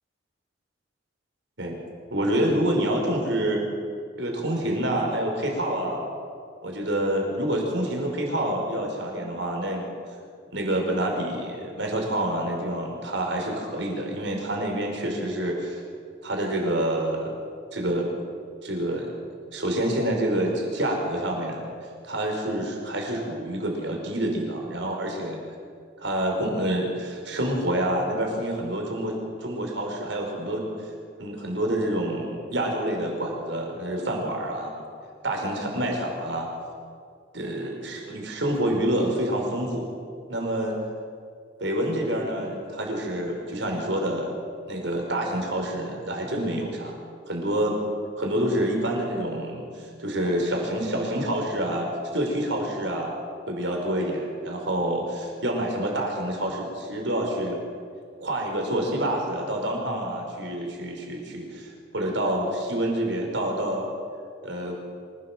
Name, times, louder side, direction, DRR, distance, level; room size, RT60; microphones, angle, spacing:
voice 1, 2.1-3.6 4.2-6.0 6.6-9.9 10.5-15.8 16.2-17.3 17.7-18.1 18.6-19.1 19.5-21.7 22.0-25.4 26.0-30.6 31.2-34.7 35.2-36.5 37.3-39.9 40.3-40.7 41.6-44.3 44.7-47.0 47.3-47.8 48.2-53.1 53.5-57.6 58.2-63.9 64.4-64.8, right 1 dB, 75° right, 1 dB, 5.2 m, -27 dB
26.0 x 16.5 x 7.5 m, 2.3 s
head